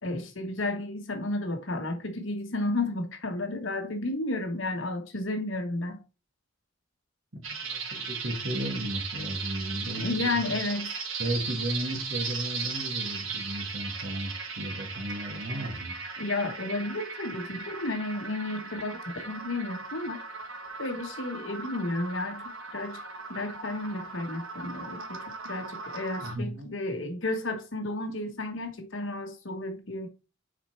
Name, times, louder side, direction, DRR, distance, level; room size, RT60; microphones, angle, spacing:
voice 1, 0.0-6.0 9.9-11.0 16.2-20.2 20.8-22.4 22.7-23.0 23.3-30.1, left 2 dB, 75° left, 1.3 m, -32 dB
voice 2, 7.3-10.6 11.2-16.0 26.2-26.7, right 1 dB, 60° right, 2.0 m, -34 dB
sound 1, 7.4-26.3, right 5 dB, 85° right, 1.6 m, -37 dB
6.6 x 4.3 x 4.4 m
head